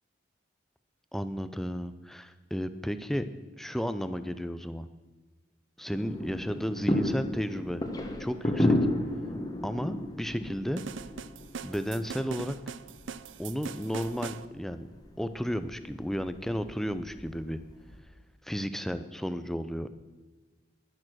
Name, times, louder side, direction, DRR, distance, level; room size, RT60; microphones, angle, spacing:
voice 1, 1.1-3.3 3.6-4.9 5.8-7.8 8.2-8.8 9.6-10.8 11.6-12.6 13.4-14.9 15.2-17.6 18.4-19.9, equal, ahead, 11 dB, 0.5 m, -33 dB
sound 1, 5.9-18.0, left 1 dB, 20° left, 1.3 m, -33 dB
sound 2, 10.8-14.5, right 6 dB, 85° right, 0.5 m, -41 dB
11.0 x 10.5 x 6.3 m, 1.3 s
head